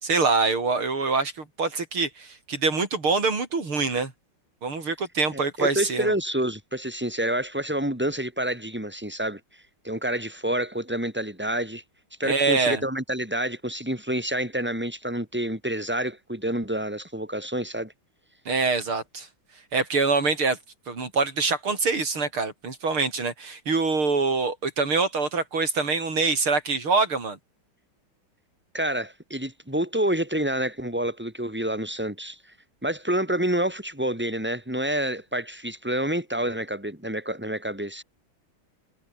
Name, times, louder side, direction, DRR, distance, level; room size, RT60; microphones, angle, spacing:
voice 1, 0.0-4.1 4.6-6.1 12.2-12.8 18.5-19.3 19.7-20.6 20.9-27.4, right 4 dB, 90° right, 5.4 m, -25 dB
voice 2, 5.3-9.4 9.8-11.8 12.2-17.9 28.7-32.4 32.8-38.0, right 1 dB, 5° right, 6.8 m, -28 dB
omnidirectional pair, 2.3 m